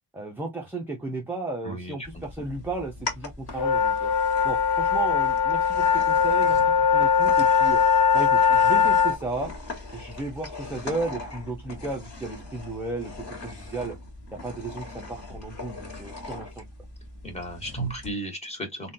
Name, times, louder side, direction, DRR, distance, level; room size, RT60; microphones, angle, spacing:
voice 1, 0.1-4.1 4.4-7.8 8.1-9.5 9.9-14.0 14.3-16.6, right 3 dB, 5° right, 0.4 m, -34 dB
voice 2, 1.6-2.2 17.2-18.9, equal, 15° left, 1.2 m, -36 dB
sound 1, 2.1-18.1, left 1 dB, 30° left, 1.4 m, -40 dB
sound 2, 3.5-9.2, left 6 dB, 80° left, 1.1 m, -21 dB
3.6 x 2.2 x 2.6 m
cardioid pair, 135°, 49 cm